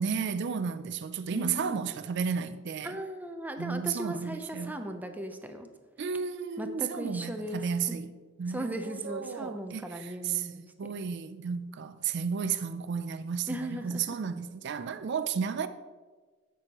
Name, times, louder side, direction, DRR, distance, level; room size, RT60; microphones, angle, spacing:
voice 1, 0.0-3.0 3.6-4.8 6.0-8.1 8.4-15.7, right 6 dB, 60° right, 0.4 m, -33 dB
voice 2, 1.3-1.9 2.8-5.7 6.6-8.0 8.5-10.6 13.5-14.2, equal, 10° right, 0.6 m, -37 dB
15.5 x 6.2 x 3.0 m
head